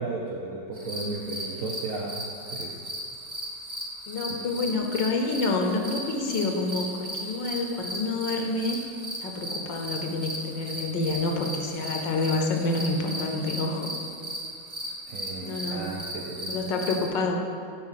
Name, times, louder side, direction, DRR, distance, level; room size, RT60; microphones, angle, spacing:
voice 1, 0.0-2.8 15.1-16.6, right 3 dB, 70° right, -1 dB, 0.7 m, -34 dB
sound 1, 0.7-17.1, equal, 45° right, 0.3 m, -36 dB
voice 2, 4.1-8.8 9.2-13.9 15.4-15.9 16.5-17.4, left 3 dB, 70° left, 3 dB, 1.3 m, -28 dB
8.9 x 4.2 x 5.7 m, 2.4 s
omnidirectional pair, 2.2 m